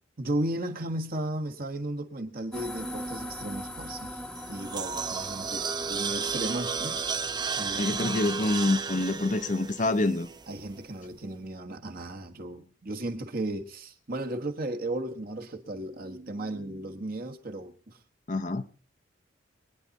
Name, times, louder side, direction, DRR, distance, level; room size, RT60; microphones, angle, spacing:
voice 1, 0.2-7.1 7.6-8.1 10.5-18.0, right 1 dB, 50° right, 1.4 m, -35 dB
sound 1, 2.5-10.1, equal, 5° left, 0.9 m, -42 dB
sound 2, 4.4-10.6, right 5 dB, 20° right, 0.6 m, -33 dB
voice 2, 7.8-10.3 18.3-18.6, left 2 dB, 40° left, 0.7 m, -26 dB
23.0 x 9.6 x 4.0 m
head